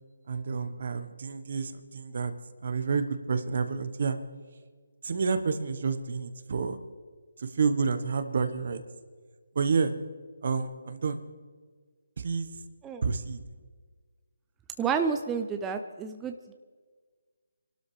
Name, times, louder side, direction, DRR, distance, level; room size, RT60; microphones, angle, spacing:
voice 1, 0.3-2.3 2.6-4.2 5.0-6.8 7.4-8.8 9.5-9.9 10.4-11.2 12.2-12.5 13.0-13.4, right 5 dB, 55° right, 9 dB, 1.3 m, -29 dB
voice 2, 14.8-16.5, right 6 dB, 10° right, 6 dB, 0.6 m, -30 dB
26.0 x 12.5 x 3.4 m, 1.5 s
figure-of-eight pair, 155°, 0 cm